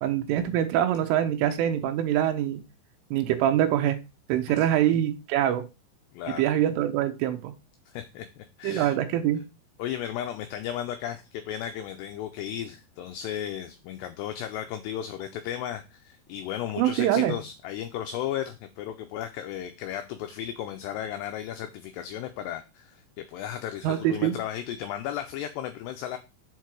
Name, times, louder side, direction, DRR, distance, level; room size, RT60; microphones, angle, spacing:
voice 1, 0.0-2.6 3.1-4.0 4.3-5.7 6.3-7.5 8.6-9.4 16.8-17.4 23.8-24.4, right 11 dB, 85° right, 7 dB, 3.5 m, -24 dB
voice 2, 7.9-9.0 9.8-23.0 23.3-26.2, left 10 dB, 85° left, 7 dB, 2.4 m, -35 dB
7.6 x 4.7 x 4.6 m, 0.28 s
omnidirectional pair, 5.6 m